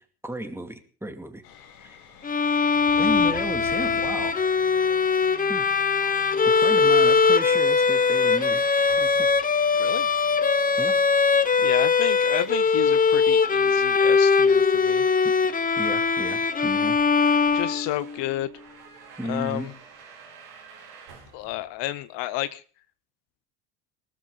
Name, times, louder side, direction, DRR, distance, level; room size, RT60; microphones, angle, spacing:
voice 1, 0.0-1.4 1.8-2.0 3.0-4.4 5.5-5.7 6.5-9.3 10.8-11.0 15.2-15.3 15.8-17.0 19.2-19.8, right 1 dB, 5° right, 7 dB, 2.3 m, -34 dB
sound 1, 1.4-17.7, left 5 dB, 80° left, 3.3 m, -47 dB
Bowed string instrument, 2.2-18.2, left 5 dB, 15° left, 0.8 m, -21 dB
sound 2, 3.4-22.3, right 6 dB, 75° right, 5.2 m, -48 dB
voice 2, 9.8-10.1 11.6-15.0 17.5-18.5 19.2-19.7 21.3-22.6, left 15 dB, 60° left, 15 dB, 0.9 m, -31 dB
19.5 x 13.5 x 3.9 m, 0.40 s
hypercardioid pair, 75°, 48 cm